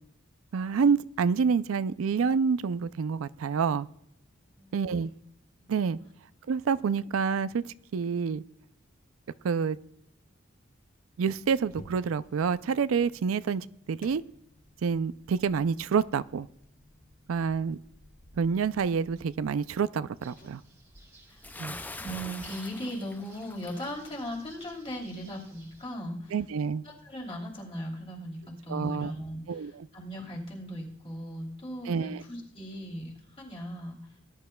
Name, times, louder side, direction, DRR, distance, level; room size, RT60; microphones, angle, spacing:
voice 1, 0.5-3.9 4.7-5.1 5.7-6.0 6.5-7.6 7.9-8.4 9.4-9.8 11.2-14.2 14.8-16.5 17.3-17.8 18.4-20.6 21.6-21.8 26.3-26.8 28.7-29.1 29.5-29.7 31.9-32.2, right 6 dB, 85° right, 0.4 m, -27 dB
voice 2, 4.5-5.2 5.6-5.7 21.3-21.5 21.9-26.4 26.8-34.0, equal, 30° left, 2.9 m, -38 dB
sound 1, 11.3-20.5, left 1 dB, 45° left, 1.0 m, -55 dB
sound 2, 20.2-25.9, right 2 dB, 15° right, 1.4 m, -56 dB
Bathtub (filling or washing) / Splash splatter, 21.4-23.9, left 2 dB, 10° left, 0.3 m, -43 dB
19.0 x 10.5 x 2.2 m
head